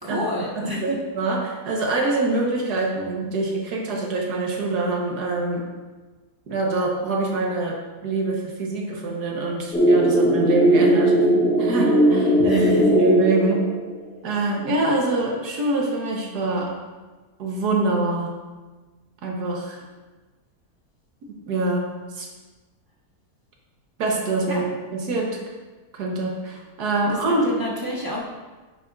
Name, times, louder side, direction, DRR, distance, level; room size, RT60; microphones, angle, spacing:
voice 1, 0.0-1.0 12.5-12.9 24.5-24.6 27.0-28.2, left 1 dB, 15° right, -4 dB, 1.0 m, -30 dB
voice 2, 0.6-5.6 6.5-11.2 11.6-13.6 14.2-16.7 17.4-18.3 19.2-19.8 21.5-22.3 24.0-25.4 25.9-27.5, right 2 dB, 90° right, -1 dB, 1.7 m, -25 dB
sound 1, 9.7-14.0, equal, 5° left, 0.7 m, -18 dB
9.7 x 6.8 x 2.5 m, 1.3 s
omnidirectional pair, 1.7 m